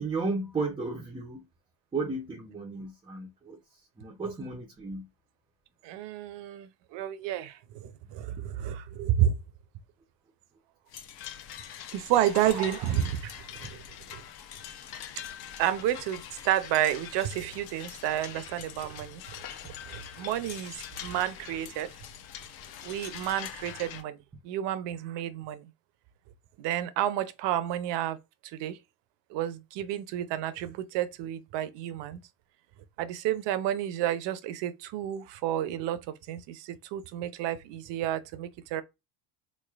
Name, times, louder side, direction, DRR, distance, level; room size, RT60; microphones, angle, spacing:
voice 1, 0.0-1.5 1.9-5.1, right 3 dB, 10° right, 0.4 m, -34 dB
voice 2, 5.8-9.4 11.9-13.8 14.1-14.2 15.6-19.2 19.9-21.9 22.8-24.2 24.4-25.7 26.6-28.2 28.4-28.8 29.3-32.2 33.0-38.8, right 11 dB, 60° right, 0.6 m, -30 dB
sound 1, 10.9-24.0, left 9 dB, 50° left, 0.7 m, -43 dB
3.6 x 3.1 x 2.4 m
cardioid pair, 115°, 50 cm